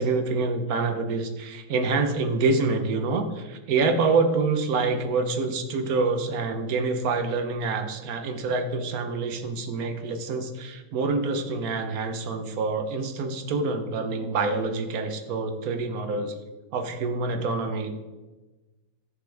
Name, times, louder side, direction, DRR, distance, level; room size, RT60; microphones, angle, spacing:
voice 1, 0.0-16.3 16.7-18.0, right 3 dB, 60° right, 7 dB, 1.3 m, -26 dB
11.0 x 8.0 x 3.5 m, 1.2 s
omnidirectional pair, 2.0 m